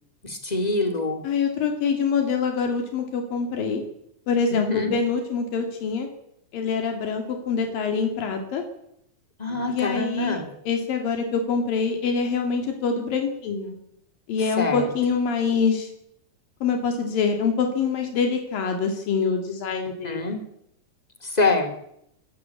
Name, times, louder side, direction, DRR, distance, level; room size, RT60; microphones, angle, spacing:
voice 1, 0.2-1.2 4.5-4.9 9.4-10.5 14.6-14.9 20.0-20.4 21.2-21.7, left 3 dB, 15° left, 7 dB, 2.5 m, -25 dB
voice 2, 1.2-3.8 4.3-6.1 6.5-8.6 9.7-10.4 10.7-13.8 14.3-15.9 16.6-20.3, left 5 dB, 85° left, 4 dB, 4.1 m, -25 dB
25.0 x 13.5 x 8.5 m, 0.76 s
omnidirectional pair, 3.9 m